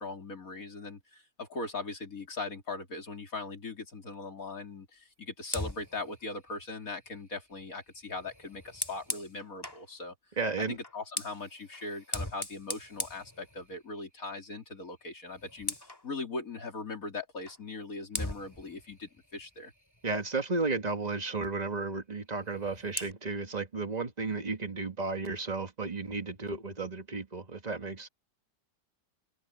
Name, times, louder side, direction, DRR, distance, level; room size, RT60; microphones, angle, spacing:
voice 1, 0.0-10.2 10.6-15.7 16.0-19.7, left 3 dB, 55° left, 3.6 m, -40 dB
Fire, 5.4-9.9 10.8-14.0 14.4-14.7 15.0-16.1 17.5-17.6 18.1-20.4 22.3-23.1, left 1 dB, 15° left, 2.4 m, -41 dB
voice 2, 10.4-10.8 20.0-28.1, right 3 dB, 25° right, 1.9 m, -33 dB
open air
omnidirectional pair, 1.8 m